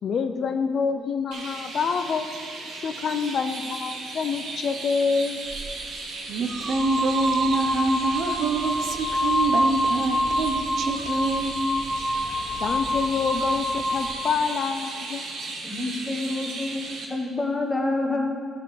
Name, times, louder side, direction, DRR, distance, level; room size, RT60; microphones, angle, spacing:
voice 1, 0.0-2.3 2.8-5.4 12.6-15.2, left 5 dB, 60° left, 8 dB, 0.5 m, -27 dB
Chirp tweet, 1.3-17.1, right 3 dB, 85° right, 1.3 m, -36 dB
sound 1, 5.5-5.7 6.5-14.2, equal, 35° right, 1.6 m, -27 dB
voice 2, 6.3-11.6, right 3 dB, 65° right, 5 dB, 0.7 m, -26 dB
voice 3, 15.6-16.8 17.1-18.3, left 2 dB, 20° left, 1 dB, 1.2 m, -27 dB
12.5 x 5.8 x 3.3 m, 2.1 s
cardioid pair, 90°, 0 cm